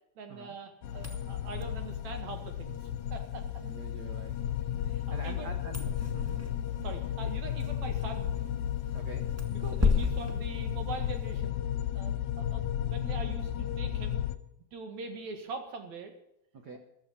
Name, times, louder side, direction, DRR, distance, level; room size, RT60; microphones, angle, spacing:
voice 1, 0.2-2.8 3.1-3.4 4.9-5.5 6.8-8.4 9.5-11.6 11.9-14.2 14.7-16.1, right 4 dB, 65° right, 6 dB, 3.0 m, -42 dB
sound 1, 0.8-14.4, left 10 dB, 75° left, 2.0 m, -34 dB
sound 2, 0.9-11.4, left 4 dB, 10° right, 0.7 m, -36 dB
voice 2, 3.6-4.3 5.1-5.8 6.1-6.4 8.9-9.3 16.5-16.8, right 4 dB, 90° right, 6 dB, 0.9 m, -45 dB
14.5 x 12.5 x 5.6 m, 0.81 s
omnidirectional pair, 3.6 m